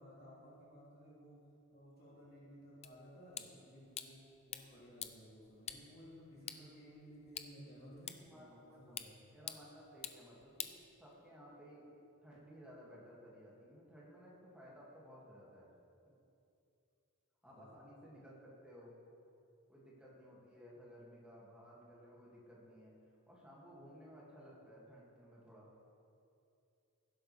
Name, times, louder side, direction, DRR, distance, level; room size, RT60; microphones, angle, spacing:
voice 1, 0.0-1.4 1.7-9.3 17.4-17.7, equal, 45° left, -8 dB, 3.0 m, -57 dB
sound 1, 2.8-11.4, left 9 dB, 30° left, 0.4 m, -50 dB
voice 2, 8.0-8.8 9.3-10.7 11.0-11.9 12.2-15.7 17.4-19.0 19.7-22.9 23.3-25.7, equal, 5° right, -6 dB, 2.4 m, -57 dB
16.0 x 11.0 x 3.5 m, 2.7 s
head